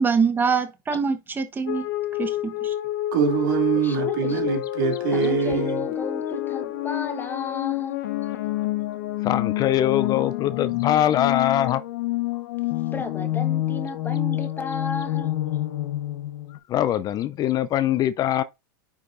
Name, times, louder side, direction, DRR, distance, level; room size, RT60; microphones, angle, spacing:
voice 1, 0.0-1.8 2.2-2.7, right 5 dB, 15° right, 1.1 m, -24 dB
sound 1, 1.7-16.6, left 14 dB, 65° left, 0.9 m, -28 dB
voice 2, 3.1-5.9, right 6 dB, 65° right, 2.3 m, -23 dB
voice 3, 3.8-4.6 5.1-8.0 12.3-12.5 12.9-15.4, left 3 dB, 15° left, 1.2 m, -33 dB
voice 4, 9.2-11.8 16.7-18.4, left 11 dB, 35° left, 0.5 m, -22 dB
9.7 x 4.9 x 2.6 m
hypercardioid pair, 110°, 12 cm